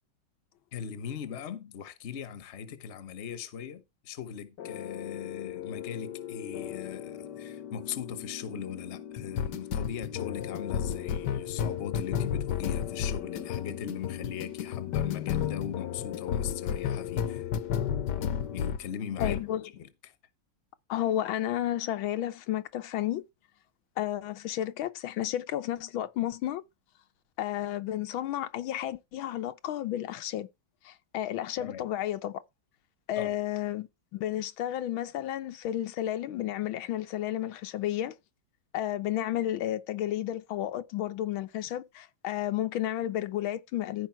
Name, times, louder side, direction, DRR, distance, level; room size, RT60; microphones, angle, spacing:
voice 1, 0.7-17.5 18.2-19.4 19.7-20.1 31.6-31.9 33.2-33.4, left 8 dB, 40° left, 1.1 m, -39 dB
sound 1, 4.6-18.9 19.2-19.5, left 9 dB, 65° left, 1.4 m, -33 dB
voice 2, 19.2-19.7 20.9-23.2 24.0-26.6 27.4-30.5 30.8-32.4 33.1-38.2 38.7-44.1, left 12 dB, 80° left, 1.6 m, -32 dB
14.5 x 5.0 x 4.6 m
omnidirectional pair, 2.2 m